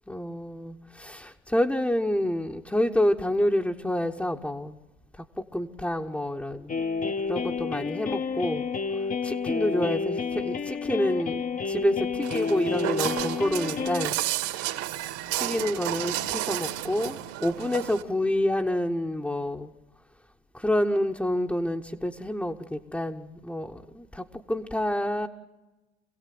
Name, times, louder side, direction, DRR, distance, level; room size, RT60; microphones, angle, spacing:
voice 1, 0.1-4.8 5.5-6.7 7.3-8.6 9.2-14.2 15.4-19.7 20.5-25.3, left 1 dB, 5° left, 0 dB, 1.1 m, -28 dB
sound 1, 6.7-14.1, left 5 dB, 25° left, 0.9 m, -30 dB
Walk footsteps, 12.2-18.0, right 14 dB, 65° right, 2.3 m, -32 dB
26.5 x 16.5 x 7.8 m, 1.1 s
hypercardioid pair, 90°, 35 cm